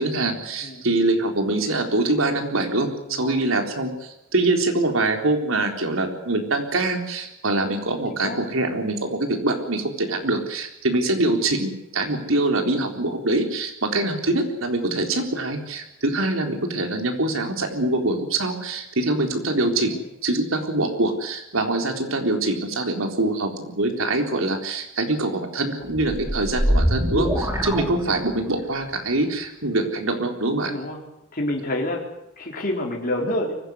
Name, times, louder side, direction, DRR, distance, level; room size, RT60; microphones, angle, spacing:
voice 1, 0.0-19.9 20.2-30.7, right 2 dB, 85° right, 4 dB, 3.9 m, -24 dB
voice 2, 3.1-3.4 8.1-8.4 19.8-20.0 27.5-27.6 30.7-31.0 31.3-32.1 32.4-33.6, left 1 dB, 45° left, -1 dB, 4.1 m, -28 dB
sound 1, 25.9-28.6, equal, 15° right, 4.6 m, -23 dB
24.0 x 16.5 x 9.7 m, 0.88 s
head